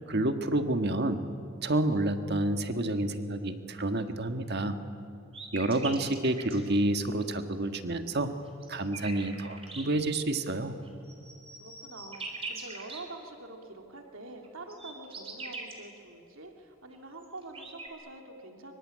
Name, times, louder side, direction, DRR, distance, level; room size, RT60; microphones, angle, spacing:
voice 1, 0.1-1.2 1.6-4.8 5.5-8.3 8.7-10.7, right 1 dB, 50° right, 7 dB, 1.7 m, -29 dB
sound 1, 5.3-6.6 8.4-9.8 10.8-13.0 14.4-15.7 16.9-17.0 17.2-17.9, right 3 dB, 25° right, 3.8 m, -41 dB
voice 2, 11.6-18.8, right 2 dB, 70° right, 3 dB, 3.1 m, -46 dB
26.0 x 24.0 x 8.8 m, 2.8 s
head